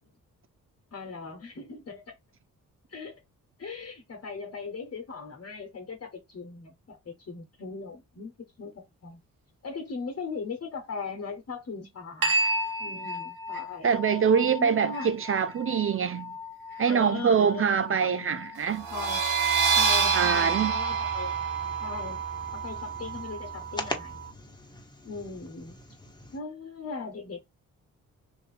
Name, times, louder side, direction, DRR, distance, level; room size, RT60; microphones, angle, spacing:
voice 1, 0.9-2.2 2.9-3.1 3.6-9.2 9.6-12.3 12.8-13.9 14.6-15.2 16.8-18.5 18.9-19.3 19.7-21.4 21.8-22.2 22.5-24.2 25.0-25.8 26.3-27.4, left 4 dB, 40° left, 1.1 m, -39 dB
sound 1, 12.2-21.2, right 1 dB, 70° right, 1.4 m, -35 dB
voice 2, 13.8-16.3 16.8-18.9 20.1-20.7, right 7 dB, 40° right, 0.4 m, -24 dB
sound 2, 18.8-24.2, right 6 dB, 90° right, 1.2 m, -27 dB
sound 3, 20.9-26.4, left 1 dB, 10° left, 1.2 m, -42 dB
3.0 x 2.6 x 4.0 m
supercardioid pair, 55°, 35 cm